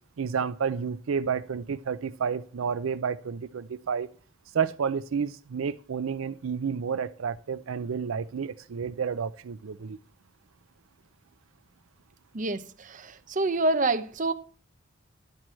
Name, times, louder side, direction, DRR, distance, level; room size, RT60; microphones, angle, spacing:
voice 1, 0.2-4.1 4.5-10.0, right 6 dB, 90° right, 0.5 m, -30 dB
voice 2, 12.3-14.3, right 2 dB, 40° right, 0.7 m, -27 dB
11.5 x 4.6 x 7.5 m
head